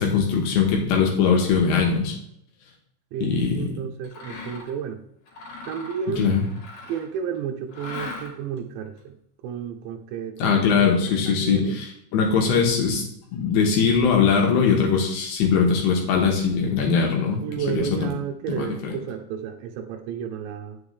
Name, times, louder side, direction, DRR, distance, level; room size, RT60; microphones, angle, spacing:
voice 1, 0.0-2.1 3.2-3.7 6.2-6.4 10.4-13.0 13.3-18.1 18.5-18.9, left 6 dB, 75° left, 0 dB, 3.3 m, -21 dB
voice 2, 3.1-5.0 5.7-6.3 6.9-9.2 9.4-11.8 17.4-20.8, right 8 dB, 80° right, 3 dB, 3.0 m, -32 dB
Mechanisms, 4.0-4.8 5.3-7.2 7.7-8.6, left 3 dB, 50° left, 3.2 m, -39 dB
8.8 x 7.2 x 3.2 m, 0.75 s
omnidirectional pair, 5.4 m